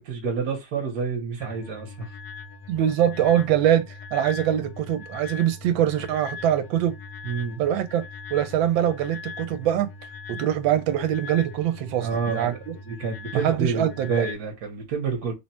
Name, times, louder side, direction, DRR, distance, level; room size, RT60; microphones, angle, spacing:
voice 1, 0.0-2.1 7.2-7.7 12.0-12.6 12.9-15.3, right 5 dB, 60° right, 1.3 m, -28 dB
sound 1, 1.4-14.3, left 5 dB, 70° left, 1.2 m, -40 dB
voice 2, 2.7-7.0 7.6-9.9 10.3-12.7 13.4-14.2, right 11 dB, 85° right, 1.4 m, -23 dB
3.8 x 2.1 x 4.1 m
omnidirectional pair, 2.1 m